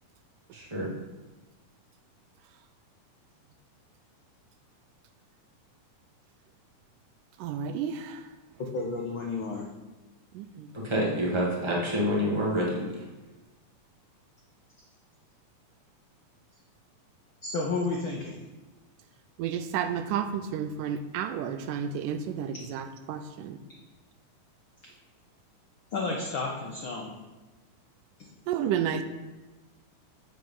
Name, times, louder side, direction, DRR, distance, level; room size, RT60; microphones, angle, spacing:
voice 1, 0.5-0.9 10.8-12.8, equal, 15° right, -4 dB, 1.0 m, -27 dB
voice 2, 7.4-8.3 10.3-10.7 19.4-23.6 28.5-29.0, right 8 dB, 90° right, 9 dB, 2.2 m, -31 dB
voice 3, 8.7-9.7 17.4-18.4 25.9-27.1 28.2-28.3, left 3 dB, 85° left, -1 dB, 1.1 m, -31 dB
7.6 x 6.5 x 5.5 m, 1.1 s
omnidirectional pair, 3.7 m